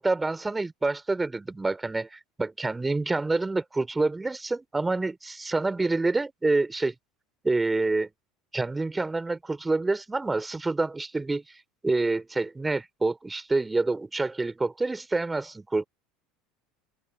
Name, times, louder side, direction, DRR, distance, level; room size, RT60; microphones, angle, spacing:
voice 1, 0.0-6.9 7.4-8.1 8.5-11.4 11.8-15.8, right 3 dB, 15° right, 3.2 m, -27 dB
figure-of-eight pair, 70°, 0 cm